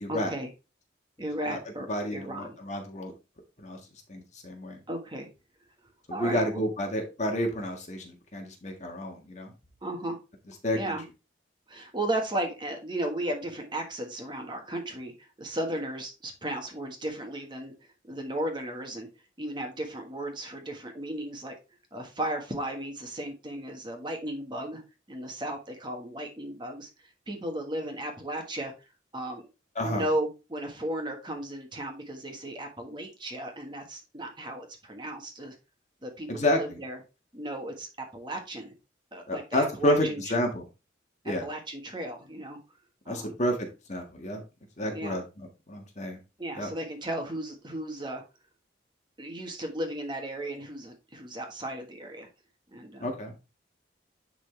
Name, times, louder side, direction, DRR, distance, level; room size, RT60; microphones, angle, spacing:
voice 1, 0.1-0.5 1.2-1.9 2.1-2.6 4.9-5.3 6.1-6.6 9.8-10.2 10.7-11.0 11.7-19.1 19.4-21.5 21.9-24.8 25.1-28.7 29.1-29.5 29.8-35.5 36.0-37.0 37.3-38.7 39.1-40.3 41.2-42.6 43.0-43.4 44.9-45.2 46.4-48.2 49.2-52.3 52.7-53.1, right 1 dB, 25° right, 3 dB, 1.4 m, -35 dB
voice 2, 1.9-3.1 3.6-3.8 4.1-4.8 6.1-9.5 10.6-11.0 29.8-30.0 36.3-36.8 39.3-40.6 41.3-41.5 43.1-44.4 44.8-46.2 46.5-46.7 53.0-53.3, equal, 40° left, 2 dB, 1.7 m, -30 dB
10.0 x 4.0 x 3.3 m, 0.28 s
head